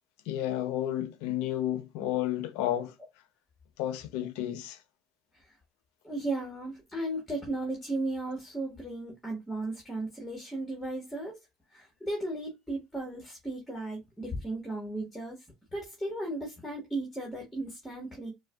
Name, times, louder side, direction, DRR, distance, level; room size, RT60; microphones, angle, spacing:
voice 1, 0.3-2.9 3.8-4.8, left 12 dB, 80° left, 0.6 m, -31 dB
voice 2, 6.0-11.4 11.7-15.4 15.7-18.3, right 2 dB, 5° left, 1.4 m, -35 dB
4.4 x 2.3 x 2.2 m
supercardioid pair, 95°, 0 cm